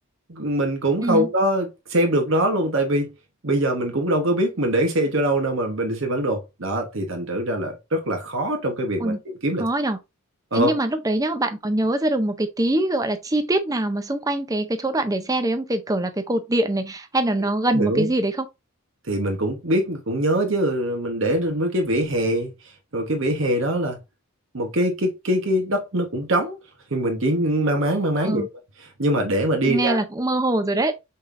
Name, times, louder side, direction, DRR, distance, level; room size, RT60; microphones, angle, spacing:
voice 1, 0.3-3.1 3.4-9.6 10.5-10.8 17.4-18.1 19.1-22.5 22.9-24.0 24.5-26.6 26.9-28.4 29.0-30.0, right 1 dB, 60° right, 1.1 m, -23 dB
voice 2, 9.6-10.0 10.5-18.5 28.2-28.5 29.6-30.9, right 1 dB, 15° right, 0.6 m, -23 dB
5.4 x 3.8 x 2.5 m
head